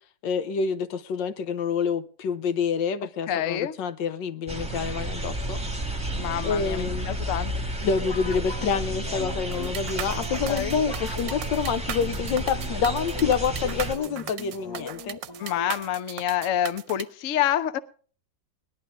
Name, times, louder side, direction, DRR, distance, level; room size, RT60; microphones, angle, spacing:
voice 1, 0.2-5.6 6.4-7.1 7.8-15.2, left 6 dB, 85° left, 1.5 m, -27 dB
voice 2, 3.3-3.7 6.1-7.7 10.5-10.8 15.4-17.8, left 11 dB, 55° left, 1.0 m, -27 dB
sound 1, 4.5-13.9, right 1 dB, 5° right, 1.2 m, -32 dB
sound 2, 7.9-16.1, left 3 dB, 35° left, 0.4 m, -39 dB
sound 3, 9.5-17.0, right 11 dB, 90° right, 1.5 m, -37 dB
19.5 x 11.5 x 3.6 m
omnidirectional pair, 1.9 m